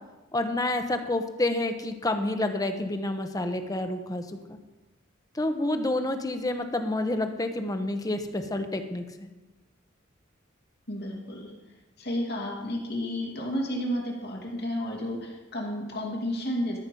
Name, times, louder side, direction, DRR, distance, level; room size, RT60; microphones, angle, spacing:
voice 1, 0.3-4.2 4.5-4.6 5.3-9.0, left 2 dB, 20° left, 7 dB, 0.8 m, -28 dB
voice 2, 10.9-11.5 12.0-16.8, equal, 55° left, -1 dB, 2.4 m, -31 dB
13.0 x 6.1 x 5.3 m, 1.1 s
head